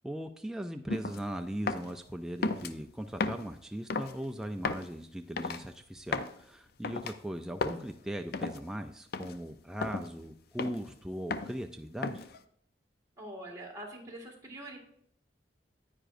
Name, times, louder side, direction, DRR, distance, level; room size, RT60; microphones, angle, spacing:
voice 1, 0.0-12.3, equal, 5° right, 5 dB, 0.3 m, -39 dB
sound 1, 0.9-1.2 1.7-1.9 2.4-2.7 3.2-3.5 3.9-4.2 4.6-4.9 5.4-5.6 6.1-6.4 6.8-7.1 7.6-7.8 8.3-8.6 9.1-9.4 9.8-10.1 10.6-10.9 11.3-11.6 12.0-12.4, left 4 dB, 60° left, 0.5 m, -34 dB
voice 2, 13.2-14.8, right 1 dB, 20° right, -2 dB, 1.8 m, -44 dB
9.6 x 8.9 x 2.5 m, 0.67 s
head